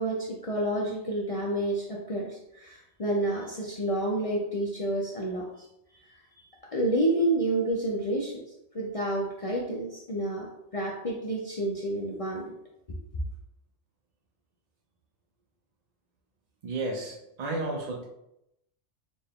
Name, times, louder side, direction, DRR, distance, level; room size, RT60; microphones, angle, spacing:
voice 1, 0.0-5.5 5.9-6.0 6.4-6.5 6.7-8.4 8.7-10.5 10.7-12.4 12.9-13.0, right 1 dB, 55° left, -3 dB, 0.4 m, -29 dB
voice 2, 16.6-18.0, right 2 dB, 60° right, -2 dB, 0.4 m, -32 dB
4.1 x 2.2 x 3.4 m, 0.84 s
omnidirectional pair, 1.3 m